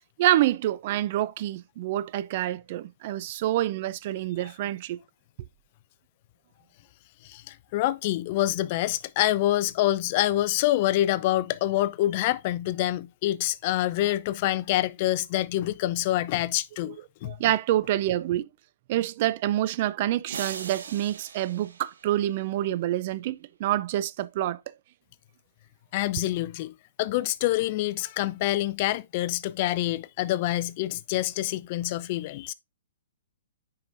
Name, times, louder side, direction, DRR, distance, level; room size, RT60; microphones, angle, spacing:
voice 1, 0.2-5.0 16.8-16.9 17.2-18.5 18.9-24.7, right 13 dB, 45° right, 0.4 m, -27 dB
voice 2, 7.2-17.3 25.9-26.7 27.0-32.5, left 15 dB, 40° left, 0.4 m, -26 dB
sound 1, 20.3-22.6, right 6 dB, 80° right, 1.1 m, -40 dB
9.7 x 4.7 x 2.6 m
hypercardioid pair, 140°, 0 cm